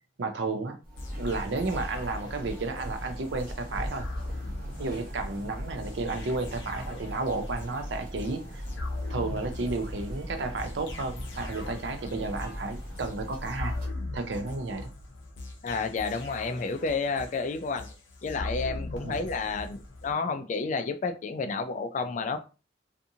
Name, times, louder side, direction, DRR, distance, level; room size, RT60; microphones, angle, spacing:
voice 1, 0.2-0.8 1.2-4.1 4.8-8.6 9.1-13.7 14.1-14.9 19.0-19.2, right 3 dB, 75° right, 0.5 m, -32 dB
sound 1, 0.8-13.9, equal, 50° right, 0.9 m, -39 dB
sound 2, 1.0-20.1, left 2 dB, 80° left, 0.6 m, -41 dB
voice 2, 15.6-17.9 18.2-22.4, left 4 dB, 40° left, 0.3 m, -30 dB
2.6 x 2.5 x 2.7 m
head